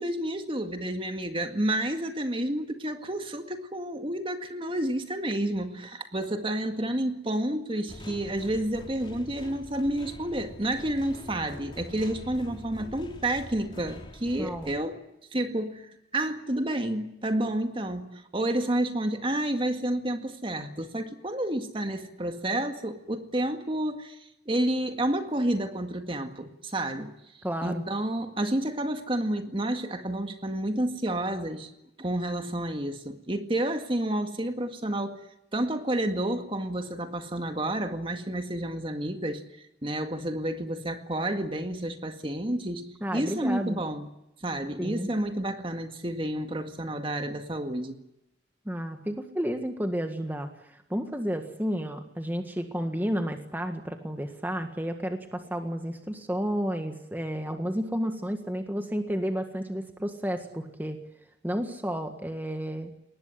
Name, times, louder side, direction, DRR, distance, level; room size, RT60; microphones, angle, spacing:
voice 1, 0.0-15.0 15.3-24.2 24.5-27.1 27.6-31.7 32.0-35.3 35.5-39.4 39.8-42.8 43.1-44.1 44.4-48.0, right 1 dB, 30° right, 7 dB, 2.0 m, -30 dB
sound 1, 7.9-14.9, equal, 30° left, 3.0 m, -44 dB
voice 2, 14.4-14.7 27.4-27.8 43.0-43.8 44.8-45.1 48.6-61.0 61.4-62.9, equal, 10° right, 6 dB, 1.7 m, -31 dB
22.0 x 19.5 x 9.9 m, 0.87 s
head